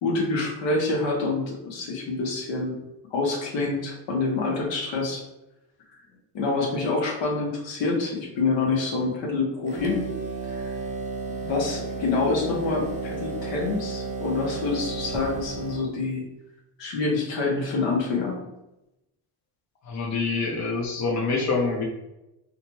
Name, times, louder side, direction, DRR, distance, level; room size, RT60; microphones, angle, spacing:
voice 1, 0.0-2.8 3.1-5.2 6.3-10.0 10.5-10.7 11.4-16.2 16.8-18.4, left 3 dB, 60° left, -1 dB, 0.9 m, -26 dB
sound 1, 9.6-15.9, right 4 dB, 15° right, 0.4 m, -33 dB
voice 2, 19.8-21.8, left 4 dB, 35° left, -2 dB, 0.7 m, -26 dB
2.5 x 2.2 x 3.0 m, 0.93 s
supercardioid pair, 75°, 49 cm